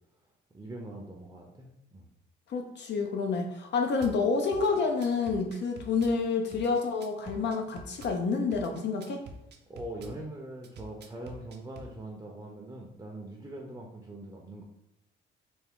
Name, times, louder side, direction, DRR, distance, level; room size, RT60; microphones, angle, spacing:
voice 1, 0.5-2.1 9.7-14.6, right 1 dB, 15° right, 0 dB, 0.6 m, -42 dB
voice 2, 2.5-9.2, left 4 dB, 60° left, 3 dB, 0.5 m, -28 dB
Drum kit / Bass drum, 4.0-4.2 4.5-6.2 6.5-8.2 8.5-10.2 10.6-11.9, right 2 dB, 60° right, 0.5 m, -46 dB
3.5 x 2.5 x 3.5 m, 0.86 s
cardioid pair, 90°, 20 cm